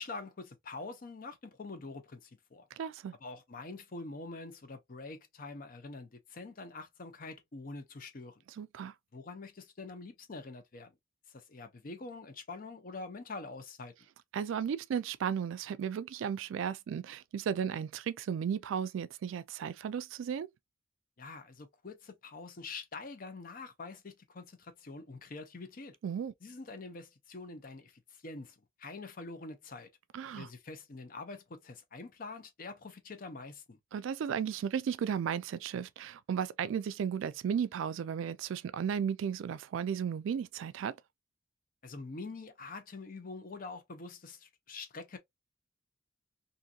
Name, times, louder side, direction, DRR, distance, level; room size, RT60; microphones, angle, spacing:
voice 1, 0.0-2.7 3.2-8.4 9.1-10.9 11.3-13.9 21.2-26.0 26.4-29.9 30.4-33.8 41.8-45.2, left 3 dB, 45° left, 0.6 m, -45 dB
voice 2, 2.8-3.1 8.6-8.9 14.3-20.5 26.0-26.3 30.1-30.5 33.9-40.9, right 7 dB, 75° right, 0.3 m, -34 dB
2.7 x 2.6 x 2.3 m
head